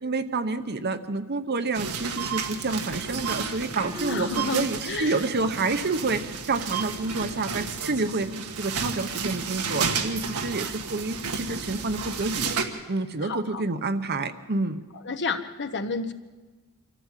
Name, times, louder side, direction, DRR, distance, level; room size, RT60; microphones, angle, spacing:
voice 1, 0.0-8.3 8.6-12.5 12.9-14.8, right 3 dB, 50° right, 9 dB, 1.0 m, -28 dB
sound 1, 1.7-12.7, right 5 dB, 90° right, 1.7 m, -32 dB
sound 2, 3.8-4.9, left 2 dB, 20° right, 1.1 m, -37 dB
voice 2, 4.1-5.2 13.2-13.6 15.0-16.1, left 4 dB, 50° left, 8 dB, 1.2 m, -31 dB
25.5 x 14.5 x 7.4 m, 1.3 s
head